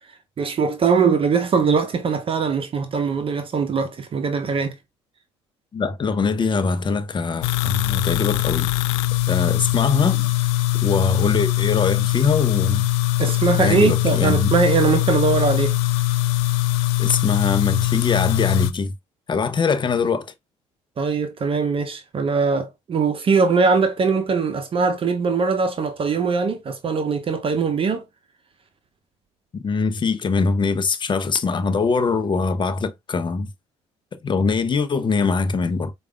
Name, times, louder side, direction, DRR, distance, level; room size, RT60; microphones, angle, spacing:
voice 1, 0.4-4.8 13.2-15.8 21.0-28.0, right 5 dB, 40° right, 0.7 m, -21 dB
voice 2, 5.7-8.7 9.3-10.3 10.8-12.8 13.6-14.5 17.0-18.9 19.3-20.3 29.6-33.5 34.1-35.9, left 4 dB, 30° left, 0.7 m, -22 dB
sound 1, 7.4-18.7, left 16 dB, 70° left, 0.4 m, -21 dB
4.7 x 2.4 x 2.2 m
hypercardioid pair, 50°, 15 cm